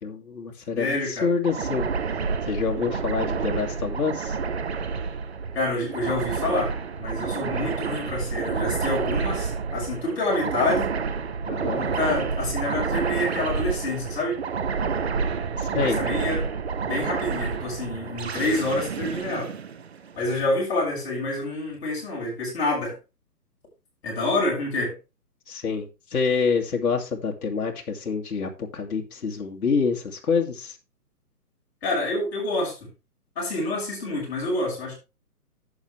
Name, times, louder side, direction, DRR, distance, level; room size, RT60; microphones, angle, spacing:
voice 1, 0.0-1.9 2.4-4.4 11.4-11.8 15.5-16.0 25.5-30.8, left 5 dB, 65° left, 2.5 m, -27 dB
voice 2, 0.7-1.3 5.5-10.9 11.7-14.4 15.8-16.4 16.8-19.5 20.1-23.0 24.0-25.0 31.8-32.9 33.3-34.9, left 2 dB, 40° left, 6.4 m, -27 dB
sound 1, 1.4-20.3, right 5 dB, 45° right, 0.8 m, -29 dB
11.0 x 7.9 x 3.3 m
hypercardioid pair, 170°, 47 cm